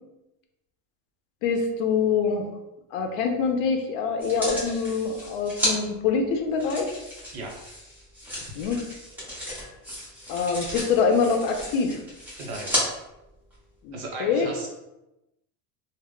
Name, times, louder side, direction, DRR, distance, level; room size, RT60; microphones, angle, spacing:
voice 1, 1.4-2.5 2.9-6.9 8.6-8.8 10.3-12.0 13.8-14.5, left 5 dB, 65° left, 4 dB, 0.6 m, -25 dB
sound 1, 4.2-5.7 6.6-12.8 13.5-13.6, left 1 dB, 5° right, 0.4 m, -33 dB
voice 2, 12.4-12.7 13.9-14.7, right 2 dB, 60° right, -1 dB, 0.9 m, -35 dB
2.1 x 2.1 x 3.6 m, 0.94 s
cardioid pair, 165°, 45 cm